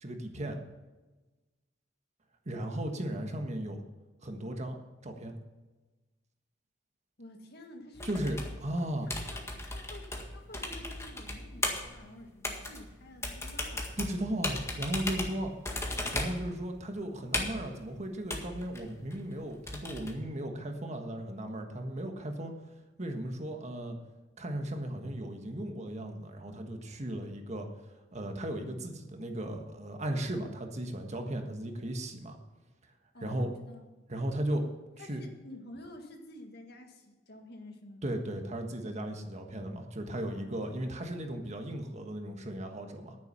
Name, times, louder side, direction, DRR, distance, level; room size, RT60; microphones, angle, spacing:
voice 1, 0.0-0.6 2.4-3.8 4.2-4.8 5.0-5.4 8.0-9.1 14.0-15.5 16.1-22.5 23.0-24.0 24.4-27.7 28.1-32.4 33.2-33.5 34.1-34.7 35.1-35.2 38.0-43.2, right 1 dB, 35° right, 4 dB, 1.5 m, -36 dB
voice 2, 7.2-8.3 9.3-13.9 33.1-33.8 35.0-38.0 40.3-40.5, left 1 dB, 55° left, 4 dB, 1.8 m, -50 dB
sound 1, 7.9-20.1, left 2 dB, 15° left, 1.8 m, -37 dB
10.5 x 9.7 x 5.7 m, 1.2 s
head